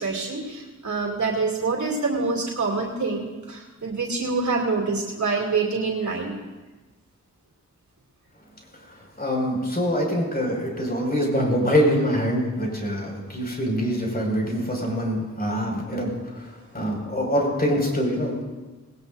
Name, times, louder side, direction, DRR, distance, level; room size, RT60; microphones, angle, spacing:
voice 1, 0.0-6.4, right 4 dB, 70° right, -2 dB, 2.7 m, -26 dB
voice 2, 9.2-18.4, equal, 30° left, -1 dB, 5.5 m, -24 dB
19.5 x 18.0 x 2.6 m, 1.2 s
cardioid pair, 60°, 30 cm